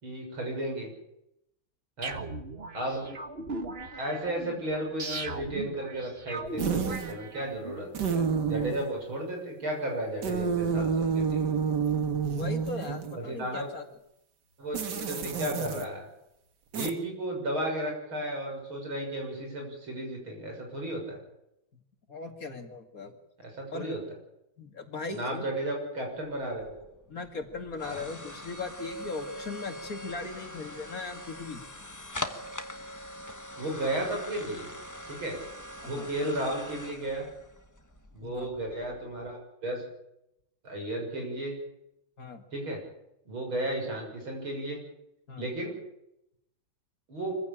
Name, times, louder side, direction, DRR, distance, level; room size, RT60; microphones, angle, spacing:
voice 1, 0.0-0.9 2.0-2.2 2.7-3.1 4.0-11.6 13.1-13.7 14.6-16.1 16.7-21.2 23.4-24.0 25.1-26.9 27.8-28.0 33.5-34.7 35.1-35.4 35.9-37.3 38.1-39.8 40.6-41.6 42.5-42.8 43.3-44.8 45.4-45.8 47.1-47.4, right 1 dB, 85° right, 1 dB, 7.4 m, -34 dB
sound 1, 2.0-7.8, right 3 dB, 30° right, 1.6 m, -38 dB
sound 2, 6.6-7.2 7.9-8.9 10.2-13.2 14.7-15.8 16.7-16.9, right 6 dB, 60° right, 2.1 m, -29 dB
voice 2, 12.4-13.8 22.1-23.1 23.7-24.0 24.6-25.5 27.1-31.6 35.8-36.1 38.2-38.5 42.2-42.4 45.3-45.4, left 4 dB, 45° left, 5 dB, 2.6 m, -38 dB
sound 3, 26.3-39.3, left 1 dB, 10° left, 1.2 m, -42 dB
25.0 x 15.5 x 8.9 m, 0.84 s
omnidirectional pair, 2.2 m